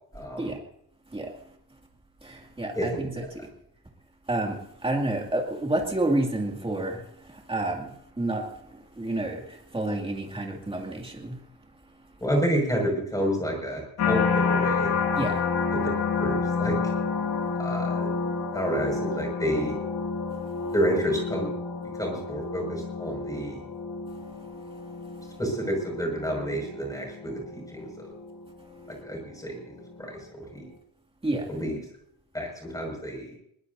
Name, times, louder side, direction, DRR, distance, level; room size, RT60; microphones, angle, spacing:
voice 1, 0.1-0.5 2.7-3.1 12.2-14.9 15.7-15.8 16.2-16.8 17.6-18.1 18.5-19.8 20.7-21.5 22.0-23.6 25.4-28.1 29.0-30.7 31.5-31.8 32.3-33.3, equal, 10° left, 1 dB, 6.0 m, -29 dB
voice 2, 2.3-3.2 4.3-4.6 4.8-7.0 7.5-7.9 8.2-8.4 9.0-9.4 9.7-11.3 15.2-15.4 31.2-31.5, right 2 dB, 15° right, 1 dB, 2.4 m, -28 dB
sound 1, 14.0-29.2 29.7-30.1, left 5 dB, 85° left, 2.4 m, -30 dB
22.0 x 19.5 x 2.7 m, 0.70 s
wide cardioid pair, 175°, 38 cm